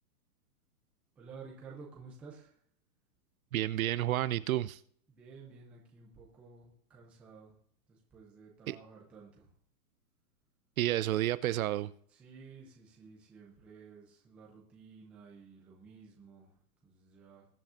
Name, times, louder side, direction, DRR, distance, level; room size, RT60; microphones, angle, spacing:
voice 1, 1.2-2.6 5.1-7.5 7.9-9.5 12.1-17.5, right 5 dB, 5° right, 0.4 m, -53 dB
voice 2, 3.5-4.8 8.7-8.8 10.8-11.9, right 14 dB, 60° right, 0.5 m, -30 dB
21.0 x 8.6 x 2.5 m
hypercardioid pair, 145°, 49 cm